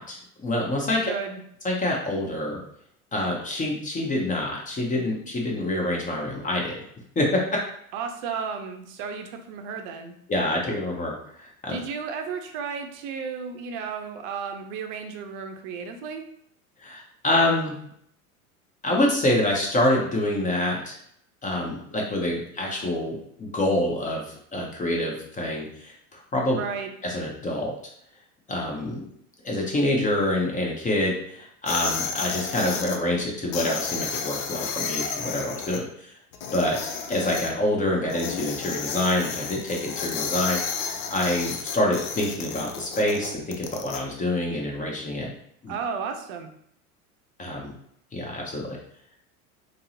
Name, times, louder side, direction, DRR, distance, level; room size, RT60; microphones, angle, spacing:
voice 1, 0.0-1.1 1.6-2.6 3.1-6.8 7.2-7.4 10.3-11.8 16.8-17.8 18.8-20.9 21.4-26.6 27.0-27.7 28.5-29.0 29.4-36.1 36.5-45.3 45.6-45.7 47.4-47.7 48.1-48.8, left 1 dB, 20° left, -1 dB, 0.7 m, -26 dB
voice 2, 1.0-1.4 7.9-10.1 11.7-16.2 26.5-26.9 45.7-46.5, right 6 dB, 50° right, 5 dB, 0.6 m, -33 dB
sound 1, 31.7-33.0 33.5-35.8 36.3-37.5 38.1-44.0, left 6 dB, 70° left, 0.6 m, -32 dB
3.5 x 2.0 x 2.8 m, 0.69 s
hypercardioid pair, 90°, 43 cm